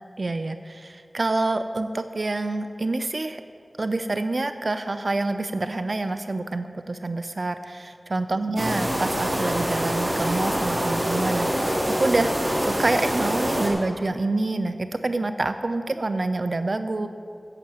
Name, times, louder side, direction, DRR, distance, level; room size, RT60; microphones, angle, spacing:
voice 1, 0.2-3.4 3.8-11.6 12.0-12.3 12.6-17.1, right 2 dB, 65° right, 10 dB, 0.5 m, -27 dB
sound 1, 8.6-13.7, equal, 40° right, 2.7 m, -25 dB
11.0 x 7.7 x 7.4 m, 2.2 s
wide cardioid pair, 50°, 0 cm